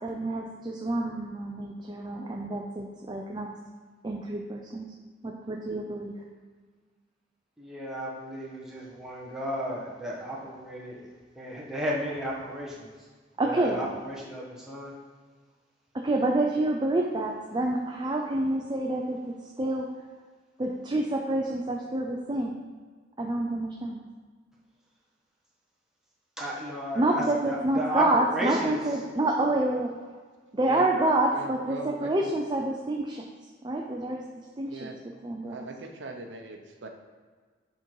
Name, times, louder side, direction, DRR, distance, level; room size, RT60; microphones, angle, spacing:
voice 1, 0.0-3.5 4.0-4.9 5.2-6.1 13.4-13.8 16.0-19.9 20.6-22.6 23.2-24.0 26.9-29.9 30.5-33.3 33.6-34.2 34.6-34.9 35.2-35.6, right 2 dB, 25° right, 0 dB, 0.5 m, -28 dB
voice 2, 7.6-12.9 13.4-14.9 26.4-28.8, equal, 5° right, -5 dB, 1.3 m, -33 dB
voice 3, 31.3-32.3 34.7-35.0 35.5-36.9, right 2 dB, 75° right, 3 dB, 0.7 m, -41 dB
7.3 x 3.8 x 4.6 m, 1.5 s
head